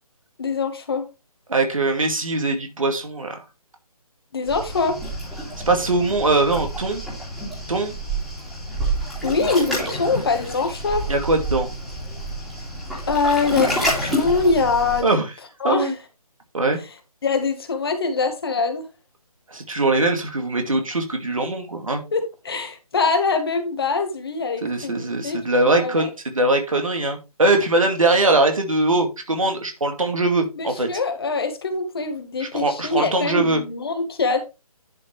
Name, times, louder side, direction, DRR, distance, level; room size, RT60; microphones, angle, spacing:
voice 1, 0.4-1.1 4.3-5.0 9.2-11.1 13.1-15.2 15.6-15.9 17.2-18.8 22.1-25.4 25.6-26.1 30.6-34.5, left 4 dB, 40° left, 1.7 m, -23 dB
voice 2, 1.5-3.4 5.7-7.0 7.7-7.9 11.1-11.7 15.0-15.3 15.6-15.9 16.5-16.8 19.5-22.0 24.6-30.9 32.4-33.6, right 2 dB, 60° right, 2.4 m, -21 dB
Waves surf, 4.5-15.0, right 1 dB, ahead, 2.5 m, -28 dB
10.5 x 5.7 x 3.4 m
figure-of-eight pair, 150°, 19 cm